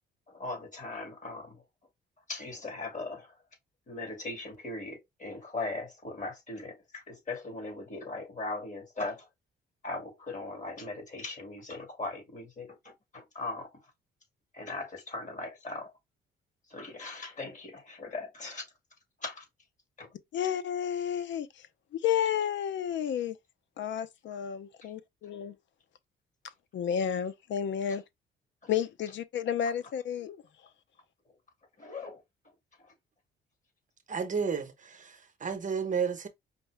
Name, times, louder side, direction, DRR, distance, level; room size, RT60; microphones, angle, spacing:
voice 1, 0.3-1.6 2.3-3.3 3.9-9.3 9.8-13.7 14.5-15.9 16.7-18.6 19.2-19.4 20.0-20.1 24.8-24.9 27.9-28.0 31.8-32.2 32.8-32.9, left 2 dB, 40° left, 2.1 m, -39 dB
voice 2, 20.3-21.5 21.9-23.4 23.8-25.5 26.7-28.0 28.7-30.4, left 9 dB, 70° left, 0.7 m, -31 dB
voice 3, 34.1-36.3, right 6 dB, 40° right, 0.9 m, -32 dB
5.2 x 2.2 x 3.2 m
cardioid pair, 90°, 20 cm